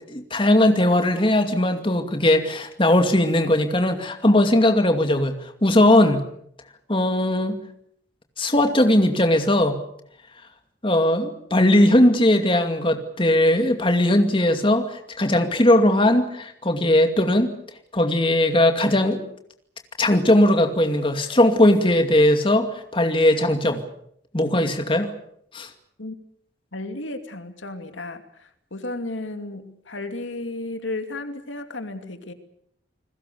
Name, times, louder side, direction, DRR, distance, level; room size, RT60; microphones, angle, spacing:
voice 1, 0.1-6.3 6.9-7.6 8.4-9.8 10.8-17.5 17.9-19.2 20.0-23.8 24.3-25.1 25.5-25.7, left 1 dB, 25° left, 6 dB, 2.4 m, -19 dB
voice 2, 26.7-32.3, left 2 dB, 90° left, 7 dB, 2.6 m, -33 dB
29.5 x 20.5 x 6.9 m, 0.70 s
head